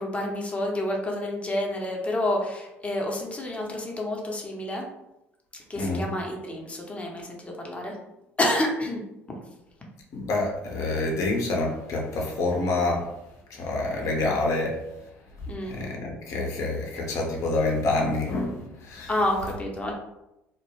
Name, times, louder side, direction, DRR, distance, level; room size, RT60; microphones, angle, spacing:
voice 1, 0.0-4.9 5.7-8.0 8.4-9.0 15.5-15.8 19.1-19.9, left 1 dB, 20° left, 0 dB, 0.7 m, -29 dB
voice 2, 10.1-13.1 13.5-14.8 15.7-19.1, left 2 dB, 50° left, -1 dB, 0.6 m, -27 dB
2.1 x 2.1 x 3.1 m, 0.89 s
figure-of-eight pair, 55°, 7 cm